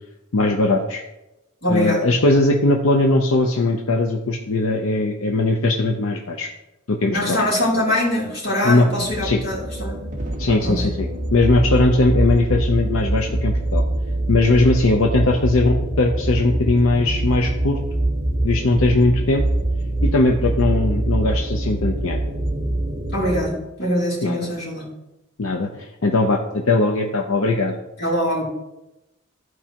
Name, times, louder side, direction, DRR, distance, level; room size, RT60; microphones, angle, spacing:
voice 1, 0.3-1.0 1.7-6.5 6.9-7.4 8.6-8.9 9.2-9.4 10.4-13.8 14.3-17.8 18.4-19.4 20.0-22.2 24.2-24.5 25.4-27.7, left 2 dB, 80° left, 2 dB, 0.7 m, -19 dB
voice 2, 1.6-2.1 7.1-10.1 10.6-10.9 23.1-24.9 28.0-28.4, left 1 dB, 50° left, -6 dB, 3.2 m, -23 dB
sound 1, 9.0-23.5, right 1 dB, 40° right, 1.3 m, -24 dB
14.0 x 4.7 x 2.9 m, 0.95 s
head